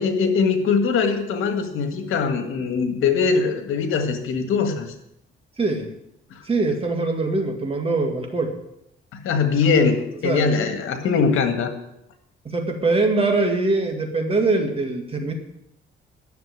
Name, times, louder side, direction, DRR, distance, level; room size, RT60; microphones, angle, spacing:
voice 1, 0.0-4.9 9.1-11.7, left 5 dB, 80° left, 7 dB, 1.9 m, -21 dB
voice 2, 5.6-5.9 6.4-8.5 10.2-10.5 12.4-15.3, right 3 dB, 25° right, 3 dB, 2.2 m, -22 dB
10.5 x 7.0 x 9.1 m, 0.81 s
cardioid pair, 130°, 21 cm